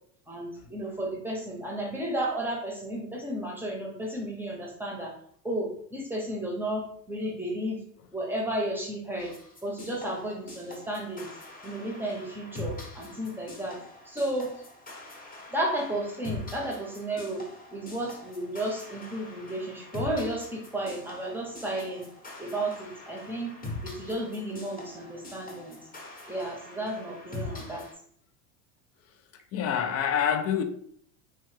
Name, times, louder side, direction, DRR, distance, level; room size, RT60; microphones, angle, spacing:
voice 1, 0.3-5.1 5.4-7.8 8.1-9.3 9.6-11.3 11.6-13.8 14.1-14.5 15.5-22.1 22.4-23.5 23.8-25.8 26.3-27.9, right 1 dB, 5° right, 0.8 m, -33 dB
sound 1, 9.2-27.9, left 2 dB, 20° left, 0.9 m, -43 dB
voice 2, 29.5-30.6, left 8 dB, 40° left, 0.4 m, -26 dB
3.1 x 2.1 x 3.2 m
hypercardioid pair, 95°, 39 cm